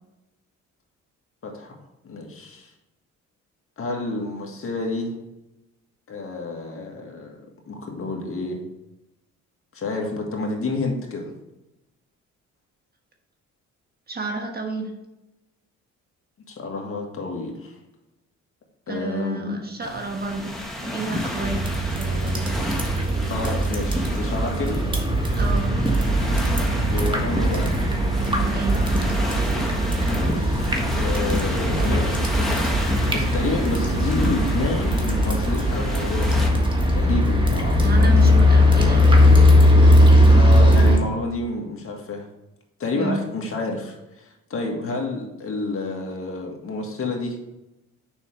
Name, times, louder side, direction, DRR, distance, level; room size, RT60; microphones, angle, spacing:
voice 1, 1.4-1.7 2.0-2.7 3.8-5.2 6.1-7.4 7.7-8.6 9.7-11.3 16.5-17.8 18.9-19.6 23.3-24.9 26.9-27.8 30.2-30.6 31.0-32.6 33.1-36.6 36.9-38.4 40.3-42.3 42.8-47.4, left 3 dB, 45° left, 1 dB, 1.8 m, -29 dB
voice 2, 14.1-14.9 18.9-21.6 21.9-22.6 25.3-25.8 28.5-28.9 37.8-39.2 42.9-43.2, right 3 dB, 30° right, 2 dB, 1.4 m, -30 dB
sound 1, 19.8-36.5, equal, ahead, 1.7 m, -31 dB
sound 2, 21.4-41.0, left 1 dB, 15° right, 1.5 m, -19 dB
6.8 x 5.7 x 3.3 m, 0.95 s
cardioid pair, 90°, 30 cm